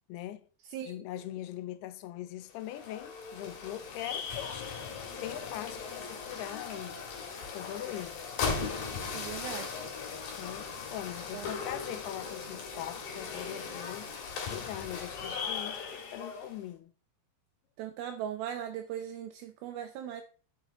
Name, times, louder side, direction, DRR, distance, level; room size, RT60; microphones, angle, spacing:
voice 1, 0.1-0.5 0.9-4.7 5.2-7.0 7.5-8.2 10.4-14.1 14.5-16.9, left 13 dB, 90° left, 2.7 m, -41 dB
sound 1, 2.5-16.6, left 5 dB, 65° left, 3.6 m, -38 dB
voice 2, 9.1-9.8 11.3-11.5 17.8-20.2, right 10 dB, 80° right, 2.5 m, -39 dB
10.5 x 6.8 x 3.8 m
omnidirectional pair, 4.5 m